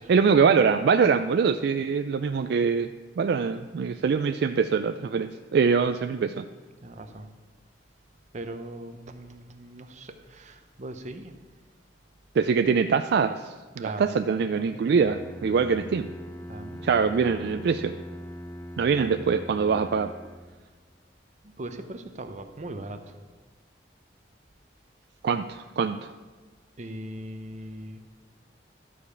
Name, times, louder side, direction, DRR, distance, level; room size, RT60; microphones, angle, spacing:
voice 1, 0.1-2.9 3.2-6.4 12.3-16.1 16.8-17.9 18.8-20.1 25.2-26.1, right 5 dB, 60° right, 9 dB, 0.3 m, -23 dB
voice 2, 6.8-7.3 8.3-11.4 13.8-14.1 14.6-14.9 16.5-17.1 19.0-19.1 21.4-23.2 26.8-28.0, right 1 dB, 40° right, 7 dB, 0.8 m, -40 dB
Bowed string instrument, 14.9-20.7, equal, 10° left, 0.7 m, -41 dB
12.5 x 5.0 x 6.9 m, 1.3 s
head